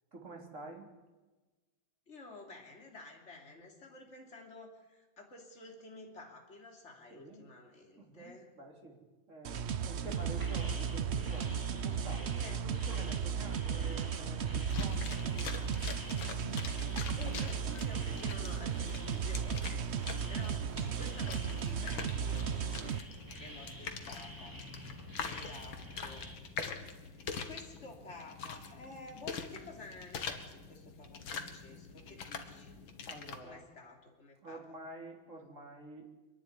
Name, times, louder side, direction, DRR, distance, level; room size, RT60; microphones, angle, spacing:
voice 1, 0.1-0.9 7.1-7.4 8.0-9.0 9.3-12.3 12.6-15.7 20.0-20.3 33.1-33.6 34.4-36.1, right 2 dB, 35° right, 1 dB, 4.0 m, -49 dB
voice 2, 2.1-8.5 12.3-12.6 17.0-19.8 20.3-22.9 23.4-24.6 24.9-26.5 27.1-32.7 33.4-34.7, left 2 dB, 35° left, 1 dB, 3.4 m, -52 dB
sound 1, 9.4-23.0, right 7 dB, 80° right, 0.6 m, -35 dB
sound 2, 10.1-26.4, equal, 10° right, 2.9 m, -49 dB
sound 3, 14.7-33.4, left 5 dB, 75° left, 2.4 m, -44 dB
27.0 x 11.0 x 9.8 m, 1.2 s
omnidirectional pair, 2.2 m